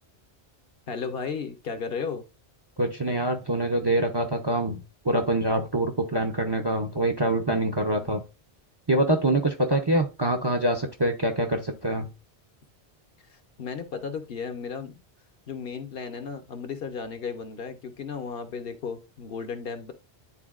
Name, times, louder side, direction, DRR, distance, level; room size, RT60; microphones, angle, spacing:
voice 1, 0.9-2.2 7.9-8.2 13.3-15.0 15.5-19.9, left 5 dB, 65° left, 1.0 m, -35 dB
voice 2, 2.8-8.2 8.9-12.1, right 1 dB, 30° right, 0.6 m, -25 dB
10.0 x 3.9 x 2.4 m
omnidirectional pair, 1.1 m